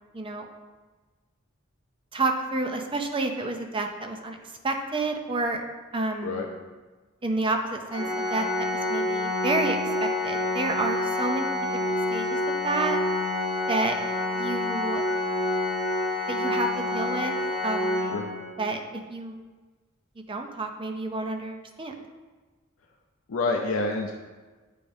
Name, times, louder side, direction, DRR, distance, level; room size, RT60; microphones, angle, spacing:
voice 1, 0.1-0.5 2.1-4.4 4.6-5.6 5.9-6.4 7.2-11.6 11.9-12.4 12.6-13.0 13.7-13.9 14.3-15.0 16.3-17.3 17.6-18.0 18.6-18.8 19.1-19.4 20.3-21.9, right 2 dB, 25° right, 4 dB, 0.5 m, -29 dB
Organ, 7.9-18.8, left 1 dB, 50° left, 1.3 m, -28 dB
voice 2, 23.3-24.1, left 3 dB, 75° left, 1 dB, 0.5 m, -27 dB
8.5 x 5.1 x 2.6 m, 1.3 s
head